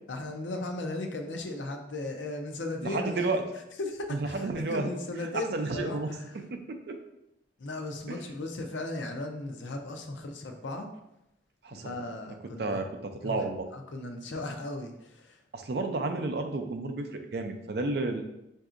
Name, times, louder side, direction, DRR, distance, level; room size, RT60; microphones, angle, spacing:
voice 1, 0.1-3.4 3.8-6.3 7.6-10.9 11.7-12.8 13.2-13.4 13.7-15.4, left 2 dB, 85° left, 4 dB, 0.6 m, -36 dB
voice 2, 2.8-3.5 4.1-4.9 5.3-7.0 8.1-8.2 11.6-12.0 12.6-13.7 15.5-18.2, right 3 dB, 60° right, 5 dB, 0.4 m, -32 dB
5.6 x 2.6 x 2.5 m, 0.87 s
head